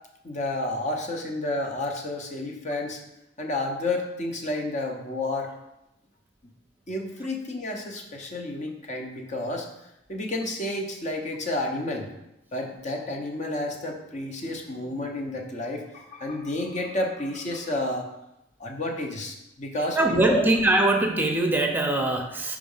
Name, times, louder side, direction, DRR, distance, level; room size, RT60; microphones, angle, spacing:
voice 1, 0.2-3.0 3.4-5.5 6.9-9.7 10.1-12.1 12.5-18.1 18.6-20.0 20.3-20.5, left 2 dB, 40° left, 2 dB, 0.9 m, -30 dB
voice 2, 19.9-22.6, right 2 dB, 10° right, 2 dB, 0.7 m, -22 dB
5.0 x 4.1 x 5.5 m, 0.87 s
head